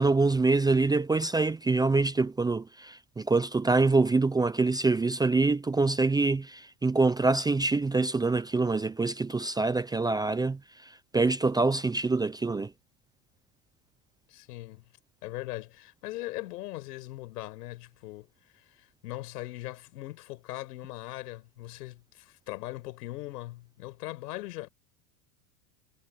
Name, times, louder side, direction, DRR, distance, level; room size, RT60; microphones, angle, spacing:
voice 1, 0.0-10.6 11.1-12.7, right 3 dB, 10° right, 0.6 m, -25 dB
voice 2, 14.3-14.8 15.2-18.3 18.5-24.7, left 17 dB, 85° left, 6.1 m, -40 dB
supercardioid pair, 135°, 46 cm